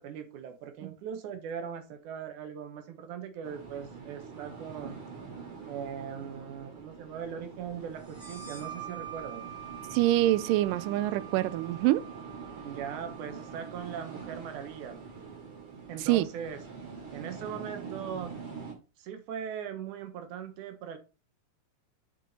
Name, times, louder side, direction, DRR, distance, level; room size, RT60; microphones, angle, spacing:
voice 1, 0.0-5.0 5.7-9.5 12.6-15.0 15.9-16.6 17.1-18.3 19.0-21.0, right 8 dB, 70° right, 2.6 m, -40 dB
sound 1, 3.4-18.7, right 5 dB, 40° right, 3.1 m, -44 dB
sound 2, 8.0-15.4, right 11 dB, 25° right, 1.2 m, -47 dB
voice 2, 9.9-12.1 16.0-16.3, right 15 dB, 85° right, 2.2 m, -25 dB
7.1 x 6.0 x 4.1 m
omnidirectional pair, 3.8 m